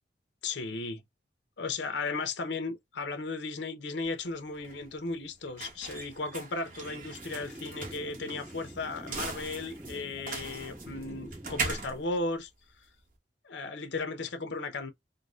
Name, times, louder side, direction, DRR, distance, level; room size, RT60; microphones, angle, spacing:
voice 1, 0.4-1.0 1.6-12.5 13.4-14.9, left 3 dB, 80° left, 0.8 m, -35 dB
sound 1, 4.1-13.1, right 4 dB, 50° right, 1.0 m, -40 dB
sound 2, 6.8-12.0, right 1 dB, 10° right, 0.4 m, -47 dB
3.7 x 2.1 x 2.4 m
head